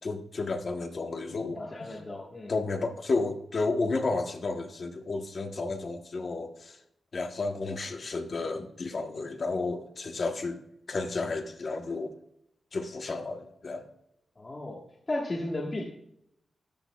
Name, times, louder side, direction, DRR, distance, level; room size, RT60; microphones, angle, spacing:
voice 1, 0.0-2.0 2.5-6.8 7.1-10.6 10.9-12.2 12.7-13.9, left 3 dB, 45° left, 4 dB, 1.1 m, -32 dB
voice 2, 1.5-2.5 14.4-14.8 15.1-15.8, left 2 dB, 25° left, -3 dB, 1.4 m, -34 dB
13.5 x 10.0 x 2.3 m, 0.77 s
wide cardioid pair, 155°, 0 cm